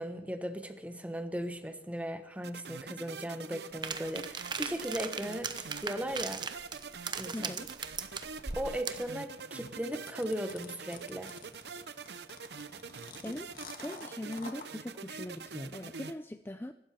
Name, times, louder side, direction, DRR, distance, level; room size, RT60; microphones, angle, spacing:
voice 1, 0.0-6.5 7.2-7.5 8.6-11.3, equal, 10° right, 1.3 m, -37 dB
sound 1, 2.4-16.1, right 5 dB, 70° right, 0.8 m, -45 dB
sound 2, 3.8-9.1, right 5 dB, 25° right, 0.9 m, -38 dB
sound 3, 7.3-14.7, left 4 dB, 50° left, 2.0 m, -49 dB
voice 2, 7.3-7.7 12.9-13.5 13.8-16.7, left 1 dB, 10° left, 0.5 m, -41 dB
24.5 x 13.0 x 4.4 m
head